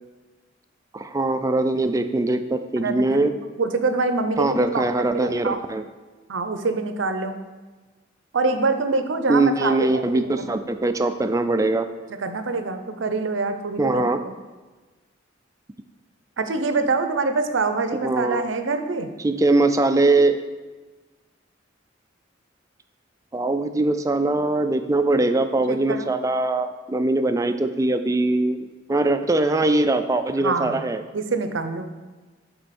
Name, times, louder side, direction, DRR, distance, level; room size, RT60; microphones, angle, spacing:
voice 1, 0.9-3.3 4.4-5.8 9.3-11.9 13.8-14.2 18.0-18.5 19.2-20.4 23.3-31.0, right 2 dB, 15° right, 8 dB, 0.3 m, -21 dB
voice 2, 2.8-3.3 3.6-5.6 6.3-7.4 8.3-10.5 12.2-14.0 16.4-19.1 25.7-26.1 30.4-31.9, right 3 dB, 85° right, 8 dB, 0.6 m, -25 dB
7.8 x 4.5 x 4.2 m, 1.3 s
head